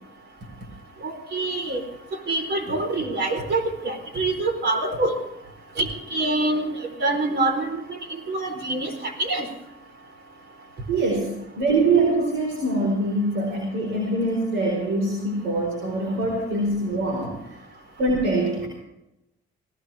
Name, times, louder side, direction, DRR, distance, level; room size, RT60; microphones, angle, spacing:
voice 1, 1.0-1.8 2.3-5.1 5.8-8.0 8.3-9.5, right 2 dB, 60° right, 5 dB, 4.3 m, -25 dB
voice 2, 10.9-17.6 18.0-18.7, right 2 dB, 85° right, 0 dB, 4.7 m, -24 dB
19.0 x 18.5 x 3.6 m, 0.89 s
cardioid pair, 90°, 20 cm